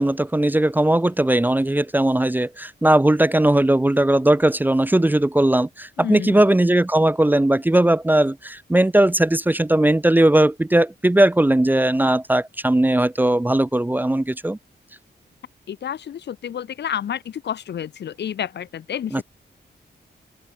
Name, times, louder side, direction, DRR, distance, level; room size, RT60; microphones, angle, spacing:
voice 1, 0.0-14.6 19.1-19.2, right 1 dB, 10° right, 0.5 m, -18 dB
voice 2, 6.0-6.4 15.7-19.2, left 9 dB, 70° left, 0.6 m, -30 dB
open air
wide cardioid pair, 145°, 18 cm